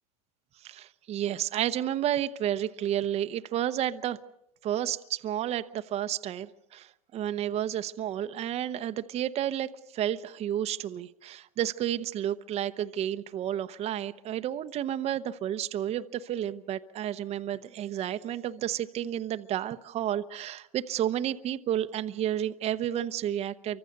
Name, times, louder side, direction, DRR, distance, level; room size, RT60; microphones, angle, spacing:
voice 1, 0.6-4.2 4.6-23.8, right 11 dB, 30° right, 0.9 m, -31 dB
28.0 x 24.5 x 6.6 m
supercardioid pair, 120°, 20 cm